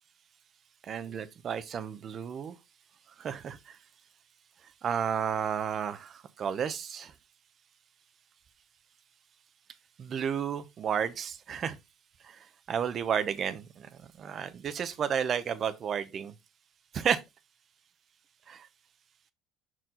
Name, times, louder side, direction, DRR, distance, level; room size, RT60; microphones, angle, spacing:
voice 1, 0.8-2.5 3.2-3.8 4.8-7.1 10.0-11.8 12.2-13.9 14.2-16.3 16.9-17.2 18.5-18.7, right 8 dB, 45° right, 0.9 m, -32 dB
6.0 x 4.6 x 3.8 m
supercardioid pair, 95°, 0 cm